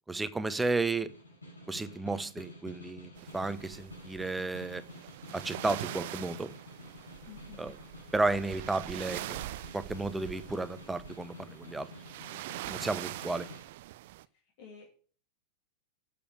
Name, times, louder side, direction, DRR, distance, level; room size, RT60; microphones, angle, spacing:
voice 1, 0.1-1.1 1.7-4.8 5.3-6.5 7.6-7.7 8.1-9.4 9.7-11.9 12.7-13.5, right 3 dB, 10° right, 0.9 m, -33 dB
Snare drum, 0.9-13.7, left 1 dB, 75° left, 4.6 m, -50 dB
sound 1, 3.2-14.3, right 16 dB, 50° right, 0.5 m, -43 dB
voice 2, 7.3-7.7 12.6-13.3 14.6-14.9, left 7 dB, 50° left, 2.7 m, -52 dB
12.0 x 7.0 x 6.7 m
figure-of-eight pair, 90°, 0 cm